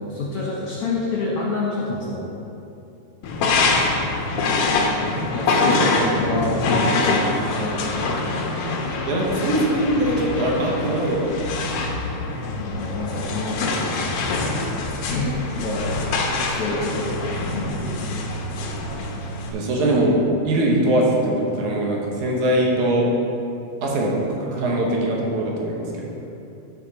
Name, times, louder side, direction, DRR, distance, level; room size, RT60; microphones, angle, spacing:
voice 1, 0.0-2.3 5.3-8.6 12.5-13.9 15.1-18.0, left 2 dB, 65° left, -4 dB, 1.6 m, -28 dB
sound 1, 3.2-19.5, left 3 dB, 85° left, 1.3 m, -24 dB
voice 2, 9.1-11.5 19.5-20.2 20.4-23.0 23.8-26.2, right 1 dB, 70° right, -2 dB, 2.4 m, -22 dB
13.0 x 4.8 x 4.0 m, 2.7 s
omnidirectional pair, 3.8 m